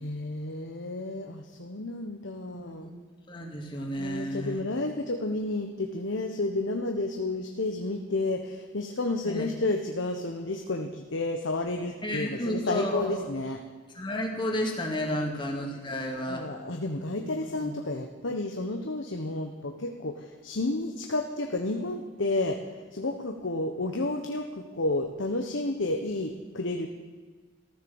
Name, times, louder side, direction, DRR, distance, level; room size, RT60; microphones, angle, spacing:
voice 1, 0.0-2.9 4.0-13.6 15.0-15.3 16.3-22.6 22.9-26.9, left 2 dB, 75° left, 4 dB, 1.2 m, -31 dB
voice 2, 2.5-2.9 3.3-4.6 9.2-9.5 12.0-13.1 13.9-16.4 17.5-17.7, equal, 25° left, 1 dB, 2.3 m, -32 dB
14.0 x 13.5 x 7.1 m, 1.4 s
head